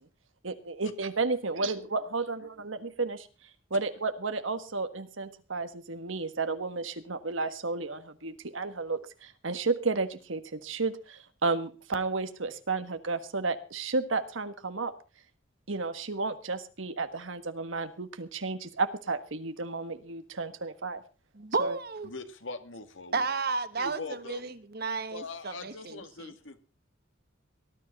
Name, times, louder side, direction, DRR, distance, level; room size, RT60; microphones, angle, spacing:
voice 1, 0.4-3.3 3.7-14.9 15.7-21.0 21.6-21.8, right 3 dB, 85° right, 10 dB, 1.6 m, -32 dB
voice 2, 21.3-22.1 23.1-26.3, right 4 dB, 55° right, 12 dB, 1.3 m, -32 dB
voice 3, 22.0-23.3 23.8-24.5 25.1-26.6, left 3 dB, 75° left, 8 dB, 2.0 m, -42 dB
19.0 x 12.5 x 4.2 m, 0.34 s
head